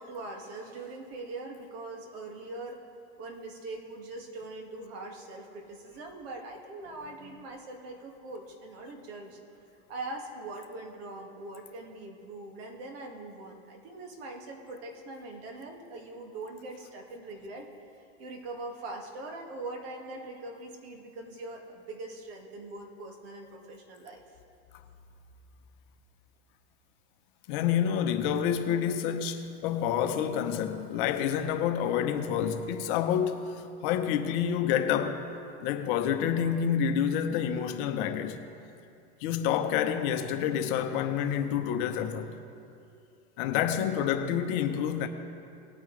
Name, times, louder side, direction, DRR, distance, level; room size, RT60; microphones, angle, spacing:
voice 1, 0.0-2.8 3.2-9.4 9.9-17.7 18.2-24.4, right 2 dB, 60° right, 2.1 m, -42 dB
voice 2, 27.5-35.2 35.6-38.4 39.2-42.4 43.4-45.1, left 8 dB, 50° left, 0.9 m, -28 dB
19.0 x 8.8 x 3.3 m
supercardioid pair, 140°, 34 cm